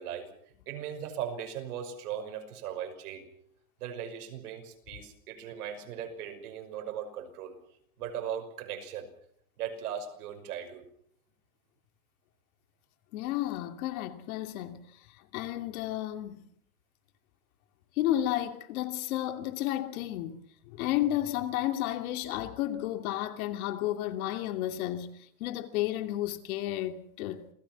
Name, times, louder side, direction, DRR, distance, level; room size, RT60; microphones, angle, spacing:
voice 1, 0.0-3.3 3.8-7.5 8.0-9.1 9.6-10.8, right 9 dB, 85° right, 5.8 m, -38 dB
voice 2, 13.1-15.0 15.3-16.4 18.0-27.5, left 13 dB, 70° left, 2.7 m, -32 dB
28.0 x 19.0 x 6.0 m
supercardioid pair, 150°, 44 cm